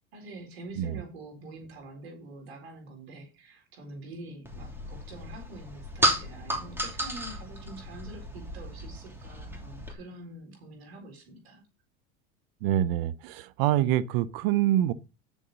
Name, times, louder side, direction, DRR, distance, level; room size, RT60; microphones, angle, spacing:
voice 1, 0.1-11.6, right 2 dB, 90° right, 4.0 m, -45 dB
sound 1, 4.5-9.9, equal, 5° right, 3.0 m, -33 dB
voice 2, 12.6-14.9, right 12 dB, 65° right, 0.8 m, -25 dB
9.9 x 7.1 x 4.1 m
supercardioid pair, 105°, 30 cm